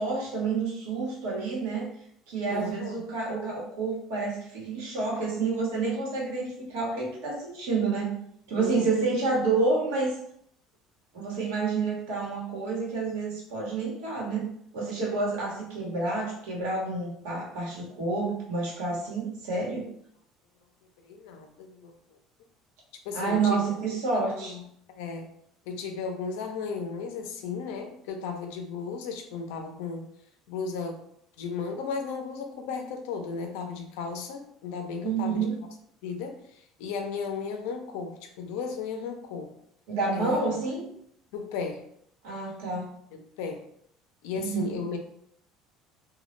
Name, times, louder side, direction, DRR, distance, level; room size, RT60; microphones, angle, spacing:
voice 1, 0.0-1.9 2.3-8.2 8.5-10.1 11.1-14.5 14.7-19.9 23.1-24.5 35.0-35.5 39.9-40.9 42.2-43.0 44.3-44.8, right 4 dB, 85° right, -4 dB, 0.9 m, -29 dB
voice 2, 2.5-3.0 8.6-8.9 21.0-22.2 23.0-23.6 24.1-24.6 24.9-25.3 25.7-30.1 30.5-31.0 31.4-35.5 36.0-39.5 40.1-40.4 41.3-41.8 43.1-43.7 44.2-45.0, left 5 dB, 80° left, 4 dB, 0.4 m, -35 dB
2.1 x 2.0 x 3.0 m, 0.69 s
supercardioid pair, 105°, 0 cm